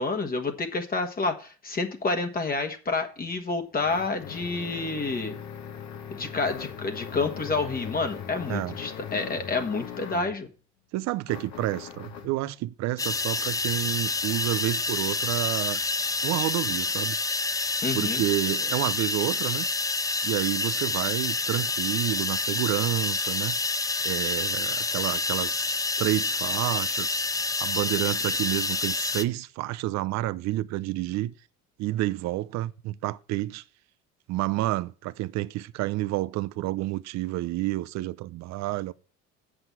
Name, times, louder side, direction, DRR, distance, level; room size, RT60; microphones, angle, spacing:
voice 1, 0.0-5.4 6.1-10.5 17.8-18.2, left 3 dB, 30° left, 1.5 m, -29 dB
sound 1, 3.2-10.4 11.3-12.4, left 8 dB, 70° left, 1.7 m, -40 dB
voice 2, 10.9-15.8 16.2-17.2 17.9-19.7 20.2-23.6 24.0-31.3 31.8-33.6 34.3-38.9, right 16 dB, 60° right, 0.7 m, -29 dB
sound 2, 13.0-29.2, left 3 dB, 10° left, 0.6 m, -28 dB
7.9 x 6.3 x 7.2 m
supercardioid pair, 90°, 30 cm